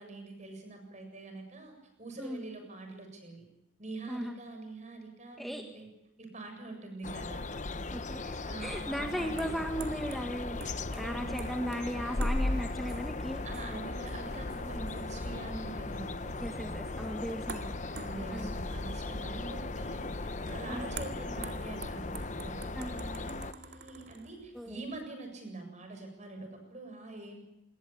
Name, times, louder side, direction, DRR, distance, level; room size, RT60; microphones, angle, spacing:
voice 1, 0.0-3.5 3.8-5.9 6.2-7.5 8.5-9.6 11.0-11.4 13.4-16.8 17.9-27.4, right 2 dB, 40° right, 5 dB, 7.7 m, -45 dB
sound 1, 7.0-23.5, left 2 dB, 40° left, 0.9 m, -37 dB
sound 2, 7.3-25.1, right 4 dB, 55° right, 2.5 m, -50 dB
voice 2, 7.9-13.4 16.4-18.0 18.3-18.5 20.7-20.9 22.7-22.9 24.5-24.8, equal, ahead, 3 dB, 1.8 m, -37 dB
27.5 x 21.5 x 8.7 m, 0.88 s
head